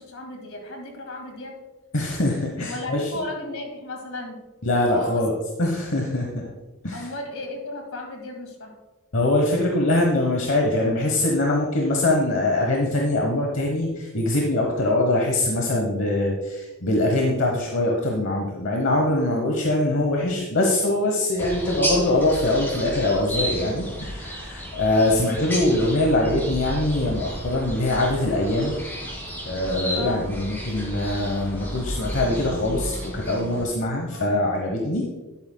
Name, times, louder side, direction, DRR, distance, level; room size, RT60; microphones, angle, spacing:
voice 1, 0.0-1.6 2.7-4.4 4.9-5.3 6.9-8.8 29.9-30.3 34.1-34.3, left 2 dB, 75° left, 3 dB, 2.0 m, -35 dB
voice 2, 1.9-3.1 4.6-5.3 5.6-6.4 6.8-7.1 9.1-28.8 29.4-35.0, left 1 dB, 60° left, 1 dB, 1.0 m, -23 dB
sound 1, 21.4-33.6, equal, 10° left, 2.0 m, -32 dB
11.0 x 8.7 x 2.2 m, 1.1 s
head